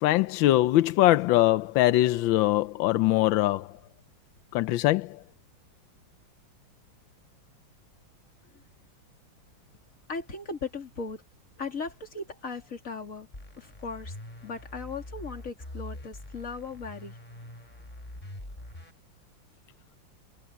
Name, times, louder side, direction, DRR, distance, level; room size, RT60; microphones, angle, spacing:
voice 1, 0.0-3.7 4.5-5.2, left 16 dB, 90° left, 1.4 m, -22 dB
voice 2, 10.1-11.2 11.6-13.3 13.6-14.2 14.4-17.2, left 4 dB, 40° left, 3.4 m, -37 dB
sound 1, 13.3-18.9, left 1 dB, 20° left, 4.2 m, -44 dB
omnidirectional pair, 2.1 m